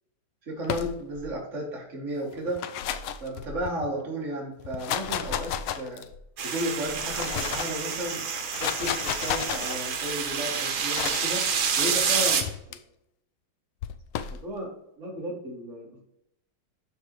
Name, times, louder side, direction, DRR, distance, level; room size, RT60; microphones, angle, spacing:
voice 1, 0.5-2.6 3.2-6.0 6.4-8.2 8.6-12.4 14.4-14.7 15.0-16.0, right 1 dB, 35° right, -2 dB, 2.4 m, -33 dB
sound 1, 0.6-1.3 2.4-3.9 4.6-6.2 6.9-7.8 8.4-9.8 10.9-11.4 12.4-12.8 13.8-14.4, left 9 dB, 90° left, 1.5 m, -32 dB
sound 2, 6.4-12.4, right 6 dB, 75° right, 2.0 m, -28 dB
13.0 x 4.7 x 3.2 m, 0.82 s
omnidirectional pair, 2.3 m